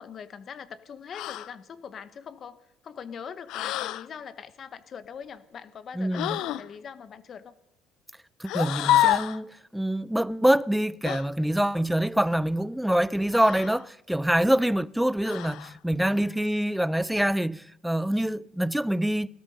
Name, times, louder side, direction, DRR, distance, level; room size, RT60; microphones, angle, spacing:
voice 1, 0.0-7.5 16.2-16.5, left 7 dB, 50° left, 1.0 m, -42 dB
sound 1, 1.1-1.5 3.5-4.1 6.1-6.7 8.4-9.4 11.0-11.3 13.3-13.8 15.2-15.7, left 13 dB, 75° left, 0.5 m, -27 dB
voice 2, 6.0-6.4 8.4-19.3, right 1 dB, 5° right, 0.5 m, -25 dB
19.5 x 12.5 x 5.4 m
supercardioid pair, 80°, 0 cm